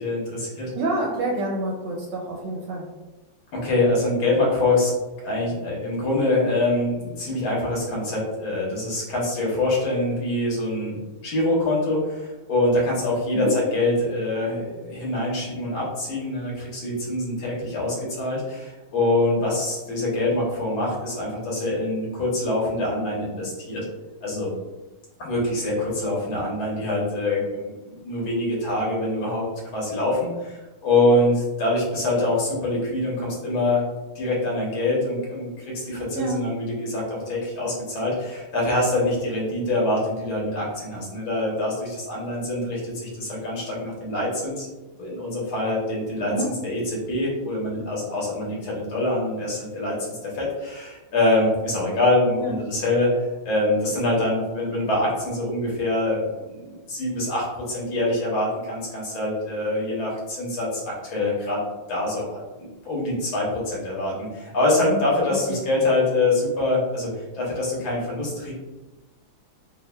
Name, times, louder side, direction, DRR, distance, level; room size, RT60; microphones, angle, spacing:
voice 1, 0.0-0.7 3.5-4.9 5.2-11.0 11.2-23.8 24.2-24.5 25.2-29.4 29.7-33.8 34.2-44.7 45.0-46.3 46.6-53.1 53.5-61.6 61.9-68.5, left 2 dB, 85° left, -4 dB, 1.9 m, -25 dB
voice 2, 0.7-2.9 13.3-13.5 36.1-36.4 46.2-46.5 52.4-52.6 64.8-65.1 65.5-65.6, right 2 dB, 70° right, -2 dB, 1.1 m, -28 dB
5.4 x 2.1 x 2.2 m, 1.2 s
omnidirectional pair, 2.3 m